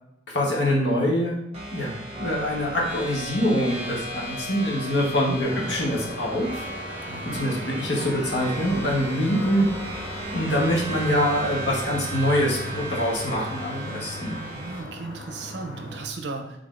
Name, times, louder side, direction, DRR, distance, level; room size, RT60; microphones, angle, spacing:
voice 1, 0.3-1.4 1.7-1.9 2.2-7.0 7.3-9.7 10.3-14.4, equal, 75° left, -2 dB, 1.0 m, -24 dB
sound 1, 1.5-14.8, right 1 dB, 35° right, 0.8 m, -35 dB
voice 2, 4.9-5.4 7.1-7.4 14.5-16.5, right 3 dB, 70° right, 4 dB, 0.5 m, -35 dB
sound 2, 5.4-16.1, left 1 dB, 30° left, 1.4 m, -39 dB
3.7 x 3.5 x 2.4 m, 0.85 s
head